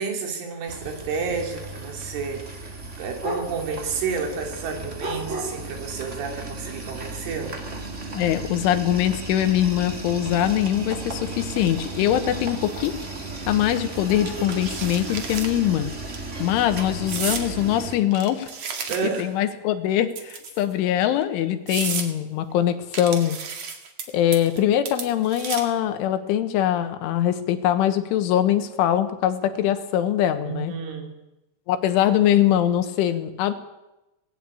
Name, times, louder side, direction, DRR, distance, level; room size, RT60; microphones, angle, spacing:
voice 1, 0.0-7.6 18.9-19.3 30.4-31.1, right 5 dB, 85° right, 3 dB, 5.6 m, -30 dB
sound 1, 0.7-18.0, right 2 dB, 30° right, 1.4 m, -34 dB
voice 2, 8.1-13.0 13.5-15.9 16.4-18.5 19.0-23.4 24.1-30.7 31.7-33.5, left 11 dB, 90° left, 9 dB, 3.8 m, -22 dB
sound 2, 14.3-15.5 15.9-16.2 17.1-17.5 18.1-19.3 20.1-20.7 21.2-21.3 21.7-22.1 22.9-24.0 24.3-24.6 24.9-25.8, right 6 dB, 50° right, 2.4 m, -32 dB
18.5 x 17.0 x 8.5 m, 0.98 s
omnidirectional pair, 5.4 m